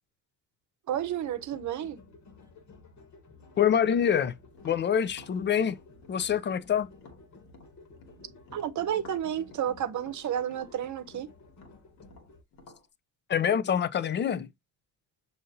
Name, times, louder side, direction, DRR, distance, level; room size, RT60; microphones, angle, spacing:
sound 1, 0.9-12.4, left 3 dB, 50° left, 1.3 m, -54 dB
voice 1, 0.9-2.0 8.5-11.3, right 10 dB, 50° right, 0.8 m, -31 dB
voice 2, 3.6-4.3 4.6-5.8 6.1-6.9 13.3-14.5, left 8 dB, 30° left, 0.4 m, -25 dB
Tap, 4.5-8.2 8.5-12.8, left 3 dB, 70° left, 1.4 m, -54 dB
6.4 x 2.7 x 2.7 m
hypercardioid pair, 60°, 37 cm